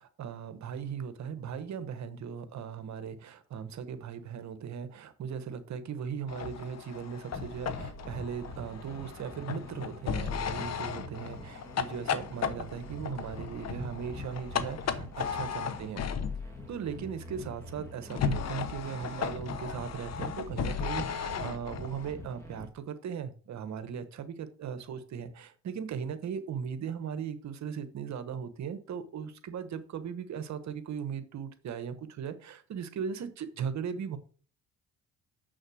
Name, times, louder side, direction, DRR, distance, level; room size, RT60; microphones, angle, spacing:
voice 1, 0.0-16.0 16.7-34.2, right 7 dB, 65° right, 1.2 m, -38 dB
sound 1, 6.3-16.6 18.1-22.1, left 7 dB, 60° left, 1.0 m, -36 dB
sound 2, 7.3-22.7, equal, 10° left, 2.6 m, -45 dB
6.9 x 6.4 x 6.3 m
cardioid pair, 90°, 30 cm